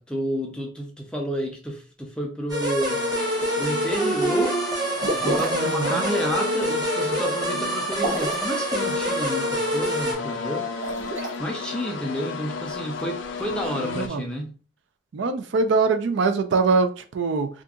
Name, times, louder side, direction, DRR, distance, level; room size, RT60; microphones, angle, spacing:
voice 1, 0.0-3.0 3.6-4.6 5.2-10.7 11.4-14.5, equal, 5° left, 0.5 m, -30 dB
sound 1, 2.5-10.1, right 1 dB, 20° right, 1.0 m, -26 dB
sound 2, 2.9-14.1, left 4 dB, 70° left, 0.4 m, -34 dB
sound 3, 5.0-5.7 7.9-8.5 10.7-11.3, right 1 dB, 85° right, 0.9 m, -28 dB
voice 2, 5.5-6.0 13.9-14.3 15.1-17.5, right 4 dB, 65° right, 0.4 m, -23 dB
2.7 x 2.5 x 3.6 m
head